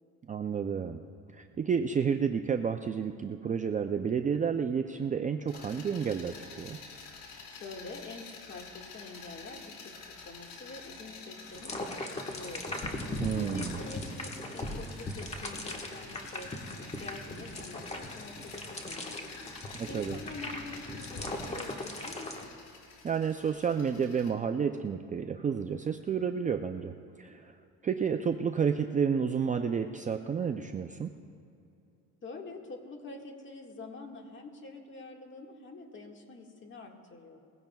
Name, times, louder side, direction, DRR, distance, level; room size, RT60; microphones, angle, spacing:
voice 1, 0.3-1.0 1.3-6.8 13.2-13.8 19.8-20.2 23.0-26.9 27.2-27.5 27.8-31.1, right 6 dB, 25° right, 6 dB, 0.4 m, -30 dB
sound 1, 5.5-24.3, left 4 dB, 80° left, 2.5 m, -49 dB
voice 2, 7.5-13.1 13.3-22.3 32.2-37.4, left 3 dB, 35° left, 1 dB, 1.8 m, -46 dB
sound 2, 11.5-22.4, left 1 dB, 20° left, 1.4 m, -39 dB
21.0 x 16.0 x 2.3 m, 2.6 s
cardioid pair, 120°, 34 cm